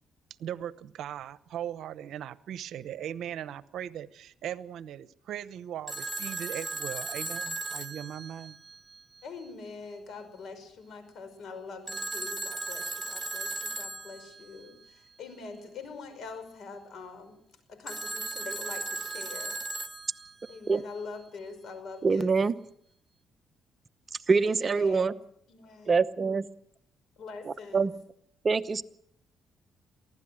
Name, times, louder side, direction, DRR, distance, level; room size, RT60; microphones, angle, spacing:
voice 1, 0.4-8.6, right 10 dB, 75° right, 15 dB, 0.9 m, -39 dB
Telephone, 5.9-9.0 11.9-14.4 17.9-20.5, right 3 dB, 15° right, 1.5 m, -36 dB
voice 2, 9.2-17.4 17.7-19.6 20.5-22.3 24.4-25.2 25.5-25.9 27.2-27.9, left 4 dB, 70° left, 10 dB, 5.3 m, -44 dB
voice 3, 22.0-22.5 24.3-25.1 25.9-26.5 27.7-27.9 28.4-28.8, right 4 dB, 35° right, 12 dB, 0.9 m, -24 dB
23.5 x 16.0 x 7.7 m, 0.72 s
cardioid pair, 90°, 0 cm